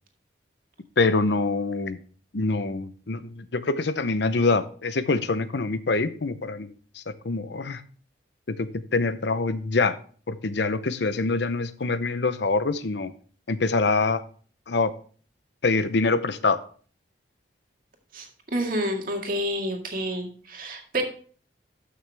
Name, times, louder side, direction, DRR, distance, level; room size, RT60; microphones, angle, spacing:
voice 1, 1.0-2.0 2.3-7.8 8.5-10.0 10.3-13.1 13.5-14.2 14.7-14.9 15.6-16.6, left 3 dB, 70° left, 13 dB, 0.7 m, -25 dB
voice 2, 18.5-21.0, right 1 dB, 50° right, 2 dB, 2.0 m, -28 dB
13.0 x 6.4 x 3.4 m, 0.44 s
head